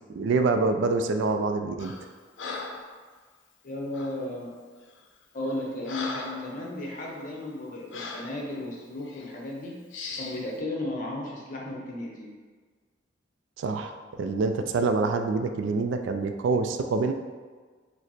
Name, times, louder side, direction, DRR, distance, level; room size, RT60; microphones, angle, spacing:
voice 1, 0.1-1.9 13.6-17.1, right 3 dB, 75° right, 7 dB, 0.3 m, -26 dB
Breathing, 1.8-2.1 2.4-2.9 3.9-4.2 4.9-5.0 5.5-6.5 7.0-7.1 7.9-8.3 9.0-9.3 9.9-10.4, left 3 dB, 75° left, 0.5 m, -38 dB
voice 2, 3.6-4.5 5.3-9.7 10.1-12.3, left 1 dB, 40° left, -2 dB, 0.8 m, -34 dB
4.9 x 2.0 x 4.2 m, 1.5 s
head